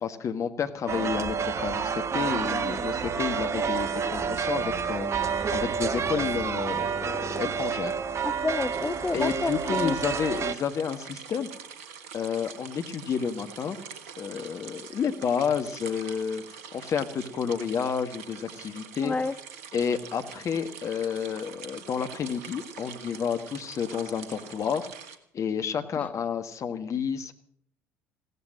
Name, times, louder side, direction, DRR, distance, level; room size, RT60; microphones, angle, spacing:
voice 1, 0.0-7.9 9.1-11.5 12.1-13.8 14.2-16.4 16.7-19.1 19.7-27.3, left 7 dB, 45° left, 8 dB, 1.6 m, -30 dB
sound 1, 0.9-10.5, right 6 dB, 40° right, 1.2 m, -29 dB
voice 2, 8.2-9.9 19.0-19.3, left 3 dB, 15° left, 14 dB, 0.6 m, -29 dB
sound 2, 8.7-25.2, right 7 dB, 75° right, 1.2 m, -45 dB
16.5 x 13.5 x 6.4 m, 0.65 s
figure-of-eight pair, 55°, 8 cm